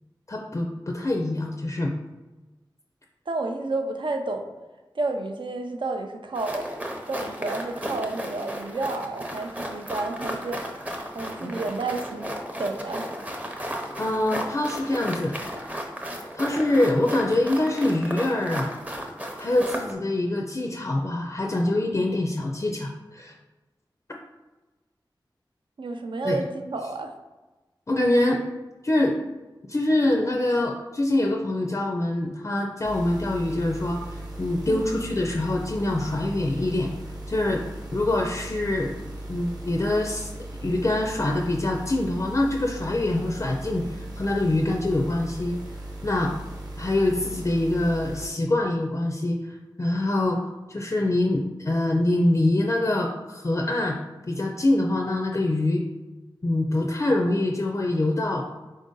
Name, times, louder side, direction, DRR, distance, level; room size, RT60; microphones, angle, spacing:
voice 1, 0.3-1.9 11.4-11.5 14.0-15.4 16.3-18.7 19.4-23.3 26.2-26.4 27.9-28.4 28.8-29.2 29.6-36.9 37.3-37.6 37.9-39.0 39.3-40.3 40.6-45.6 46.0-46.3 46.8-50.4 50.7-54.0 54.3-55.8 56.4-58.4, left 1 dB, 35° left, 1 dB, 0.4 m, -24 dB
voice 2, 3.3-4.5 4.9-6.7 7.1-10.6 11.1-13.1 25.8-27.1 34.7-34.8, right 3 dB, 75° right, 4 dB, 0.4 m, -30 dB
sound 1, 6.4-19.9, equal, 15° right, 0.6 m, -34 dB
sound 2, 32.8-48.3, right 1 dB, 50° right, 0.9 m, -38 dB
3.8 x 2.6 x 3.8 m, 1.2 s
wide cardioid pair, 45°, 8 cm